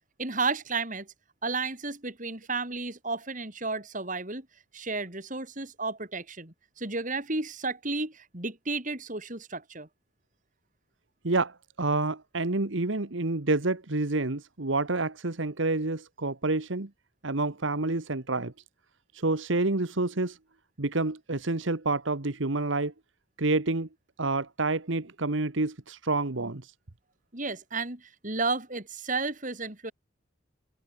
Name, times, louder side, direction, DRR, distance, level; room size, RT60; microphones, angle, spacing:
voice 1, 0.2-1.1 1.4-4.5 4.7-9.9 27.3-29.9, right 3 dB, 40° right, 3.6 m, -32 dB
voice 2, 11.2-16.9 17.2-18.5 19.1-20.4 20.8-22.9 23.4-23.9 24.2-26.7, right 2 dB, 70° right, 1.4 m, -28 dB
head